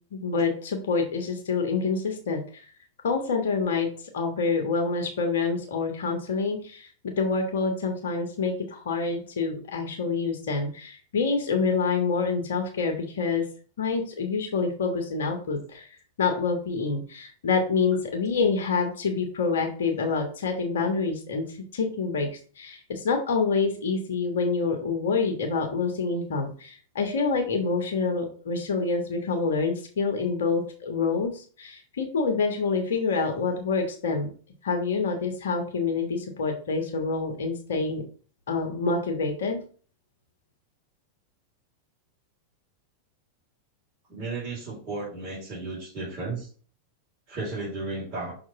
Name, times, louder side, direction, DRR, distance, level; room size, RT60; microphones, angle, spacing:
voice 1, 0.1-2.6 3.0-3.9 4.1-13.4 13.8-15.9 16.2-21.4 21.7-22.3 22.6-34.3 34.6-38.0 38.5-39.6, left 4 dB, 60° left, 4 dB, 1.4 m, -27 dB
voice 2, 44.1-46.5 47.3-48.3, right 3 dB, 30° right, -7 dB, 3.7 m, -34 dB
6.1 x 3.6 x 5.8 m, 0.42 s
figure-of-eight pair, 90°, 0 cm